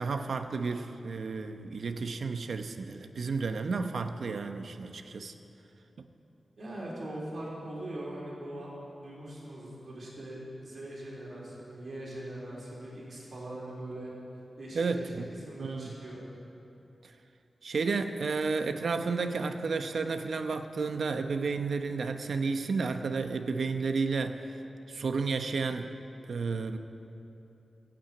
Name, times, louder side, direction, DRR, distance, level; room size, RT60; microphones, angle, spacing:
voice 1, 0.0-5.3 14.7-15.3 15.6-15.9 17.6-24.4 24.9-25.9 26.3-26.8, right 4 dB, 70° right, 7 dB, 0.8 m, -32 dB
voice 2, 6.6-8.7 9.0-14.1 14.6-15.1 15.4-16.2, right 1 dB, 45° right, -5 dB, 3.7 m, -41 dB
16.0 x 8.9 x 8.8 m, 2.9 s
wide cardioid pair, 170°, 0 cm